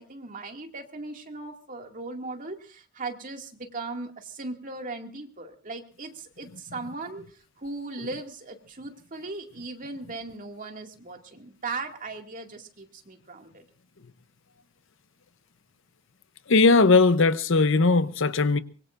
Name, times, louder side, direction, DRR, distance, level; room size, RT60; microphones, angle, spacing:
voice 1, 0.0-13.6, right 3 dB, 40° right, 2.3 m, -38 dB
voice 2, 16.5-18.6, left 3 dB, 60° left, 0.8 m, -19 dB
24.5 x 22.0 x 2.6 m
head